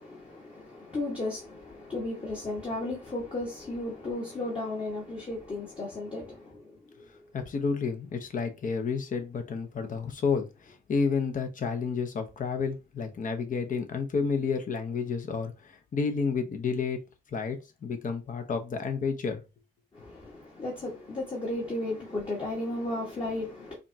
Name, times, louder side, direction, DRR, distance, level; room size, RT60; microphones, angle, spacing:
voice 1, 0.0-6.7 19.9-23.8, left 2 dB, 25° left, 1.4 m, -34 dB
voice 2, 7.3-17.0 17.3-19.4, left 5 dB, 40° left, 0.9 m, -30 dB
5.0 x 2.4 x 2.7 m
cardioid pair, 90°, 20 cm